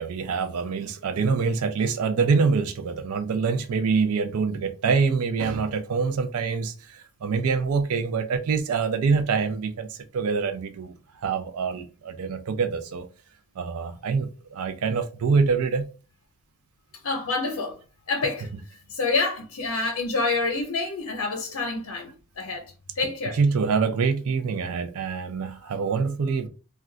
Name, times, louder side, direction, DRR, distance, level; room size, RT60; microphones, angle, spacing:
voice 1, 0.0-13.1 13.6-15.8 18.2-18.5 23.0-26.5, right 5 dB, 80° right, 0.4 m, -25 dB
voice 2, 17.0-22.1 22.4-23.4, left 3 dB, 75° left, 0.6 m, -28 dB
2.3 x 2.2 x 3.7 m
head